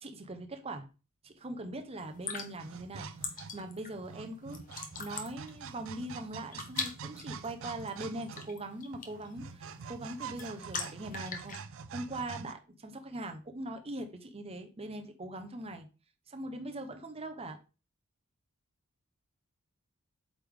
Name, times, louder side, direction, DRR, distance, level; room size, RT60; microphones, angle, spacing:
voice 1, 0.0-0.9 1.2-4.6 5.0-11.6 11.9-15.9 16.3-17.6, right 1 dB, 30° right, 0.8 m, -41 dB
sound 1, 2.0-11.6, left 5 dB, 40° left, 1.0 m, -43 dB
sound 2, 2.6-12.5, right 5 dB, 65° right, 0.5 m, -46 dB
8.1 x 3.5 x 3.7 m
head